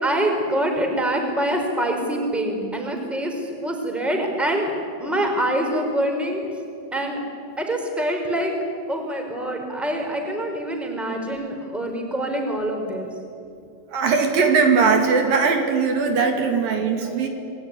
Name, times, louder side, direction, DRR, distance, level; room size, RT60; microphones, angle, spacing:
voice 1, 0.0-6.4 6.9-7.2 7.6-8.5 8.9-13.1 17.0-17.2, right 1 dB, ahead, 3 dB, 4.0 m, -25 dB
voice 2, 13.9-17.3, right 5 dB, 70° right, 3 dB, 4.0 m, -19 dB
28.5 x 21.0 x 9.7 m, 2.5 s
omnidirectional pair, 4.2 m